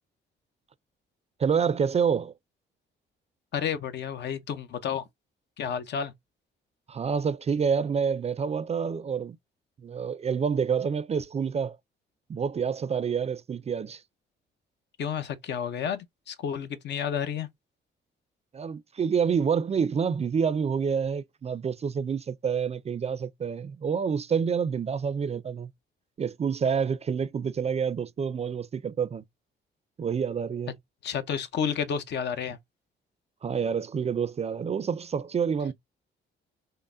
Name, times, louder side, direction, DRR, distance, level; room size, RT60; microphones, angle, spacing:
voice 1, 1.4-2.3 6.9-9.4 9.8-11.8 12.3-14.0 18.5-25.7 26.2-29.2 30.0-30.7 33.4-35.7, right 6 dB, 30° right, 0.4 m, -28 dB
voice 2, 3.5-5.1 5.6-6.1 15.0-17.5 31.0-32.6, left 7 dB, 60° left, 0.7 m, -31 dB
5.4 x 2.1 x 2.5 m
cardioid pair, 90°, 20 cm